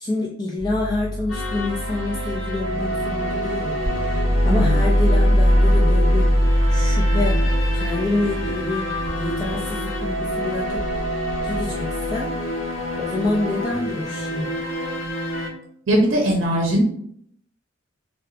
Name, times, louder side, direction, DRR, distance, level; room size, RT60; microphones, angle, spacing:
voice 1, 0.0-6.4 6.7-7.5 7.7-11.0 11.4-12.4 13.0-14.6, left 2 dB, 20° left, -2 dB, 0.3 m, -27 dB
sound 1, 0.6-12.3 13.2-13.6, equal, 20° right, 1.1 m, -22 dB
sound 2, 1.3-15.5, equal, 85° left, 0.8 m, -28 dB
voice 2, 15.9-16.8, equal, 85° right, 0 dB, 0.6 m, -19 dB
3.7 x 2.2 x 2.5 m, 0.66 s
head